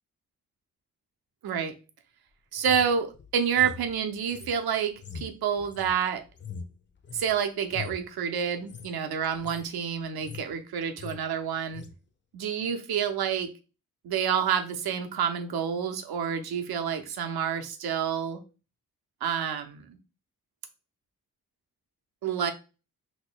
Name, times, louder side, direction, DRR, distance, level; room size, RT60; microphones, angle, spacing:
voice 1, 1.4-1.7 2.5-6.2 7.1-11.8 12.3-13.5 14.0-18.4 19.2-20.0 22.2-22.5, right 8 dB, 80° right, 6 dB, 0.7 m, -28 dB
sound 1, 2.6-7.3 7.7-8.1 8.6-8.9 9.2-9.7 10.0-10.6 10.8-11.2 11.7-11.9, left 6 dB, 30° left, 0.5 m, -42 dB
4.1 x 3.0 x 2.2 m, 0.32 s
cardioid pair, 55°, 37 cm